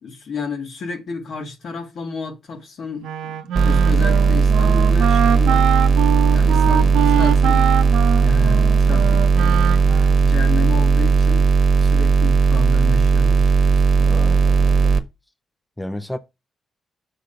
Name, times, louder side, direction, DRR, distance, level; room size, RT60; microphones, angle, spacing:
voice 1, 0.0-3.4 3.6-5.7 6.3-7.7 8.1-9.9 10.2-11.5 11.8-14.0, left 4 dB, 65° left, 2.0 m, -31 dB
Wind instrument woodwind instrument, 3.0-10.3, right 10 dB, 80° right, 0.6 m, -24 dB
sound 1, 3.5-15.0, right 5 dB, 55° right, 1.0 m, -16 dB
voice 2, 6.7-7.0 14.0-14.9 15.8-16.2, left 1 dB, 10° left, 0.7 m, -32 dB
6.6 x 3.7 x 5.7 m
hypercardioid pair, 45°, 0 cm